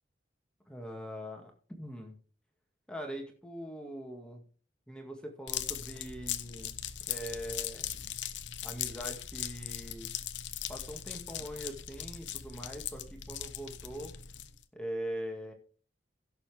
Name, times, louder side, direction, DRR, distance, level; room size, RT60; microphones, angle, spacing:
voice 1, 0.7-2.2 2.9-4.4 4.9-6.7 7.1-8.0 8.6-10.1 10.7-14.1 14.7-15.5, equal, 5° left, 2 dB, 2.0 m, -42 dB
sound 1, 5.5-14.6, left 10 dB, 85° left, 1.0 m, -39 dB
17.0 x 7.1 x 3.5 m, 0.40 s
head